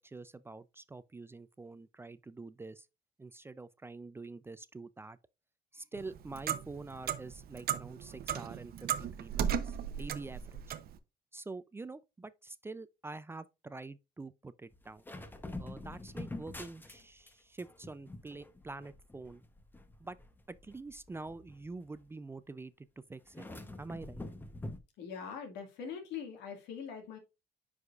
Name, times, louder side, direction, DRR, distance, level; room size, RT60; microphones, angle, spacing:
voice 1, 0.0-2.9 3.2-5.2 5.7-10.6 11.3-15.0 15.6-19.4 20.0-20.2 20.5-23.5 23.8-24.2, right 3 dB, 15° right, 0.4 m, -46 dB
Clock, 5.9-10.9, right 9 dB, 65° right, 0.7 m, -36 dB
sound 1, 14.7-17.3 17.6-22.0 23.3-24.8, left 2 dB, 10° left, 0.8 m, -46 dB
voice 2, 25.0-27.2, left 7 dB, 85° left, 2.0 m, -42 dB
9.5 x 4.8 x 2.4 m
cardioid pair, 110°, 17 cm